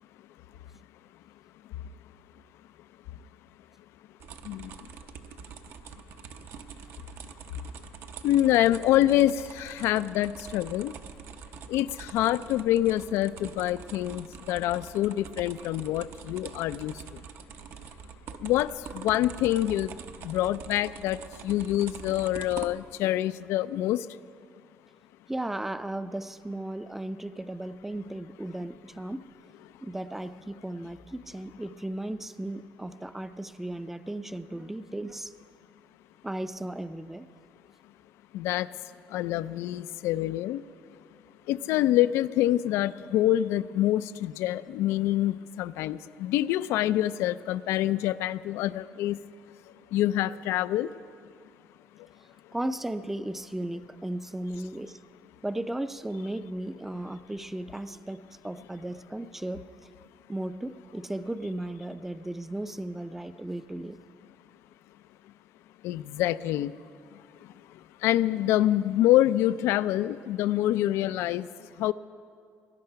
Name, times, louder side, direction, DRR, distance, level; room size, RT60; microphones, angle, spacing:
sound 1, 4.2-23.0, right 7 dB, 70° right, 0.7 m, -45 dB
voice 1, 8.2-10.9 11.7-16.9 18.4-19.9 20.2-21.2 21.4-24.0 38.3-38.7 39.1-40.6 41.5-49.2 49.9-50.9 65.8-66.7 68.0-71.5 71.8-71.9, left 13 dB, 85° left, 16 dB, 0.4 m, -26 dB
voice 2, 25.3-29.2 29.8-35.3 36.2-37.3 52.5-55.0 55.4-59.6 60.3-64.0, right 1 dB, 5° right, 12 dB, 0.4 m, -35 dB
20.0 x 10.5 x 5.7 m, 2.3 s
cardioid pair, 125°, 4 cm